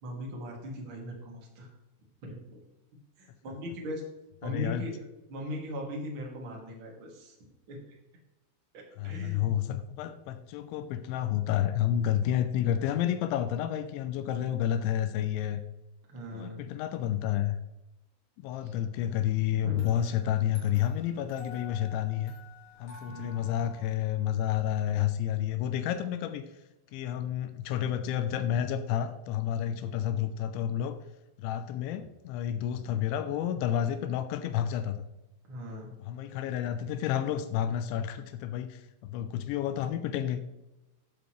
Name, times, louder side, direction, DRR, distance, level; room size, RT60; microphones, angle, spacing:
voice 1, 0.0-1.7 2.2-2.6 3.2-4.0 4.4-4.9 5.3-8.0 8.7-9.6 16.1-16.7 18.6-18.7 19.6-19.9 23.1-23.5 35.5-35.9, equal, 40° right, -2 dB, 1.8 m, -39 dB
voice 2, 4.4-4.8 9.0-15.6 16.3-17.6 18.4-22.3 22.8-26.4 26.9-31.0 31.4-35.1 36.0-40.4, left 10 dB, 85° left, 9 dB, 2.7 m, -30 dB
sound 1, 19.7-24.7, left 3 dB, 35° left, 2.7 m, -51 dB
14.5 x 7.2 x 3.2 m, 0.96 s
omnidirectional pair, 5.9 m